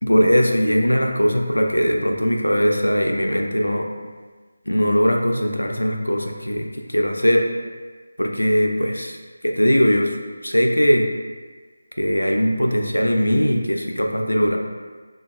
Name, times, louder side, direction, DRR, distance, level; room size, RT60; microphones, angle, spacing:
voice 1, 0.0-3.9 4.7-7.5 8.2-9.2 9.4-10.1 10.4-11.1 12.0-14.6, equal, 85° left, 2 dB, 0.3 m, -20 dB
2.8 x 2.2 x 2.2 m, 1.4 s
figure-of-eight pair, 160°, 0 cm